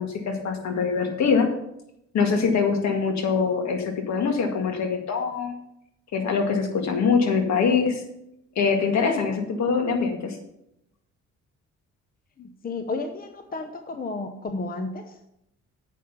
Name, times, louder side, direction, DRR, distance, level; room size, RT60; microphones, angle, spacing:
voice 1, 0.0-1.5 2.1-5.6 6.1-8.0 8.6-10.4, left 5 dB, 65° left, 4 dB, 1.9 m, -23 dB
voice 2, 12.4-15.2, left 3 dB, 30° left, 7 dB, 0.8 m, -32 dB
8.4 x 5.7 x 6.7 m, 0.81 s
cardioid pair, 90°, 30 cm